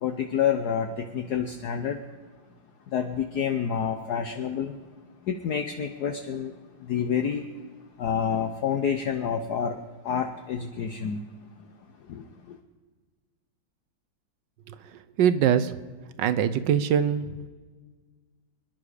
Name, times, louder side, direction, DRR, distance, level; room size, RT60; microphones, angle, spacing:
voice 1, 0.0-2.0 2.9-4.8 5.2-6.5 6.8-7.5 8.0-11.2 12.0-12.6, left 7 dB, 60° left, 5 dB, 1.2 m, -28 dB
voice 2, 15.2-15.7 16.2-17.2, right 9 dB, 70° right, 13 dB, 1.4 m, -22 dB
25.5 x 10.5 x 5.0 m, 1.4 s
omnidirectional pair, 2.1 m